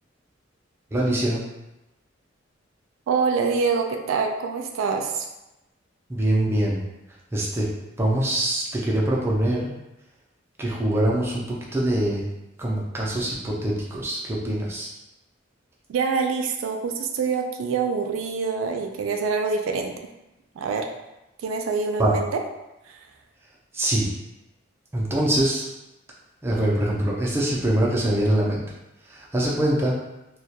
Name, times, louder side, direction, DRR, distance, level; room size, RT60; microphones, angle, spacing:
voice 1, 0.9-1.4 6.1-6.8 7.3-7.7 8.0-9.7 10.6-12.2 12.6-14.9 22.0-22.1 23.7-24.1 24.9-25.7 26.4-28.6 29.1-30.0, right 1 dB, 10° right, -4 dB, 0.4 m, -23 dB
voice 2, 3.1-5.3 15.9-19.9 20.6-20.9 21.4-22.3 22.9-23.0, right 5 dB, 90° right, 4 dB, 0.3 m, -25 dB
2.2 x 2.1 x 2.7 m, 0.95 s
head